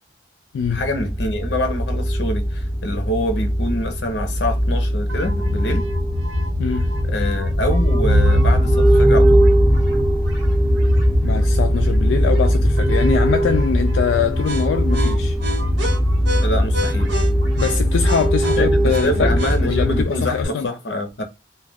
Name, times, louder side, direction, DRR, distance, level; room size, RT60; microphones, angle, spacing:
sound 1, 0.6-20.0, equal, 5° right, 0.4 m, -19 dB
voice 1, 0.7-5.9 6.6-6.8 7.0-9.4 16.4-17.1 18.6-21.2, left 1 dB, 70° left, 0.7 m, -25 dB
sound 2, 5.1-20.5, left 2 dB, 85° right, 1.0 m, -26 dB
voice 2, 6.6-6.9 11.2-15.4 17.6-20.7, left 6 dB, 90° left, 0.3 m, -23 dB
sound 3, 8.1-10.0, equal, 55° right, 1.0 m, -21 dB
2.4 x 2.2 x 3.3 m
head